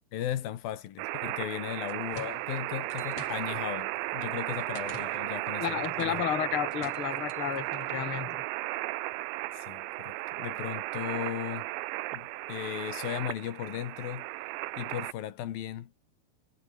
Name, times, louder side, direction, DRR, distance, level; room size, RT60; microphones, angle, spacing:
voice 1, 0.1-6.2 9.5-11.7 12.1-14.3 14.8-15.9, left 11 dB, 65° left, 3.0 m, -36 dB
sound 1, 1.0-15.1, right 19 dB, 90° right, 3.0 m, -35 dB
sound 2, 1.7-8.0, left 4 dB, 35° left, 5.1 m, -50 dB
voice 2, 5.6-8.4, left 11 dB, 85° left, 1.2 m, -32 dB
omnidirectional pair, 5.2 m